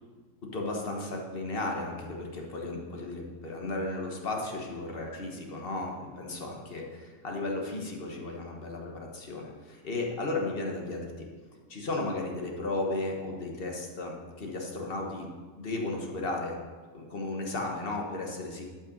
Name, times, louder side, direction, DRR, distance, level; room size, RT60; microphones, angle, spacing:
voice 1, 0.4-11.3 11.7-15.3 15.6-16.6 16.9-18.7, left 2 dB, 40° left, 0 dB, 1.5 m, -34 dB
11.5 x 5.8 x 5.3 m, 1.5 s
omnidirectional pair, 1.6 m